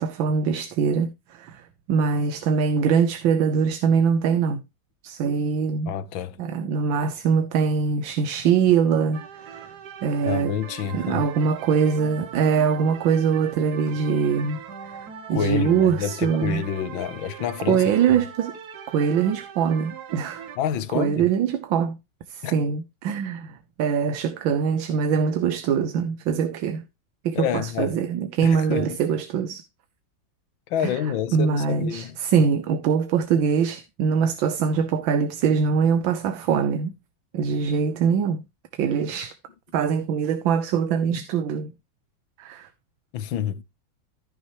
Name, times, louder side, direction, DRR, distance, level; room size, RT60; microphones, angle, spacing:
voice 1, 0.0-4.6 5.0-5.9 6.4-9.7 10.0-10.6 10.9-14.6 14.8-15.0 15.3-16.6 17.7-18.6 18.9-20.4 20.9-22.0 22.3-26.8 27.2-29.6 30.8-31.0 31.3-36.9 37.3-38.4 38.8-39.4 39.7-41.7 42.4-42.7, right 6 dB, 75° right, 1.6 m, -23 dB
voice 2, 5.9-6.4 10.2-11.3 15.3-18.2 20.6-21.3 22.4-22.5 27.3-28.0 28.4-29.0 30.7-32.2 43.1-43.6, left 9 dB, 75° left, 1.6 m, -28 dB
sound 1, 9.1-20.6, right 8 dB, 55° right, 1.6 m, -41 dB
14.5 x 6.0 x 3.0 m
omnidirectional pair, 2.2 m